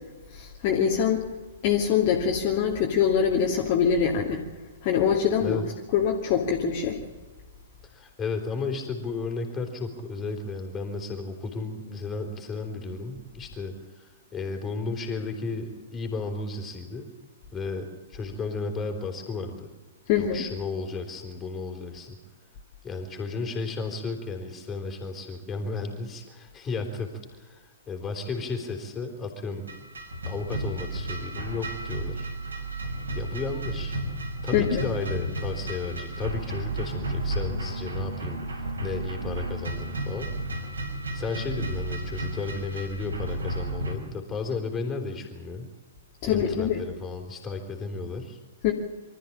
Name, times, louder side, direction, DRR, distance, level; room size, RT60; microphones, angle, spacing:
voice 1, 0.3-1.2 1.6-4.4 4.8-5.6 5.9-7.0 20.1-20.4 34.5-34.9 46.2-46.8 48.6-48.7, left 8 dB, 35° left, -1 dB, 2.5 m, -24 dB
voice 2, 7.9-17.1 17.5-19.7 20.2-22.2 22.8-29.7 30.2-32.3 33.1-34.0 34.4-40.6 41.1-45.7 46.2-48.4, left 4 dB, 15° left, 3 dB, 4.1 m, -34 dB
sound 1, 29.7-43.9, right 1 dB, 70° right, 4.7 m, -32 dB
24.5 x 14.0 x 8.8 m, 1.2 s
figure-of-eight pair, 110°, 0 cm